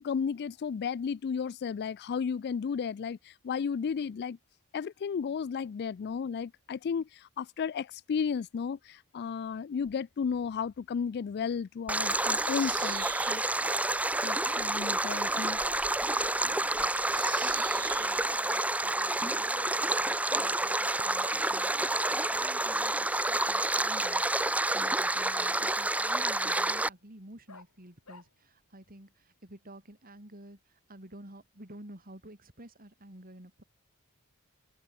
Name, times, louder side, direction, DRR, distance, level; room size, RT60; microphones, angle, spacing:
voice 1, 0.0-4.4 4.7-13.4 14.2-15.6, left 6 dB, 50° left, 0.3 m, -33 dB
Stream, 11.9-26.9, right 2 dB, 5° right, 0.6 m, -29 dB
Bird vocalization bird call bird song, 12.0-18.4, right 12 dB, 90° right, 3.3 m, -46 dB
Bark, 13.6-13.8 14.4-14.6 15.0-15.2 15.6-15.9 17.3-17.5 17.9-18.1 19.5-19.7 20.7-20.8 21.2-21.4 23.5-23.7 24.1-24.3 24.8-25.5 26.0-26.1 26.6-26.8 27.5-27.6 28.1-28.2, left 4 dB, 80° left, 3.2 m, -49 dB
voice 2, 16.5-17.2 17.7-21.7 22.3-24.3 24.7-33.6, right 1 dB, 40° right, 5.4 m, -52 dB
open air
head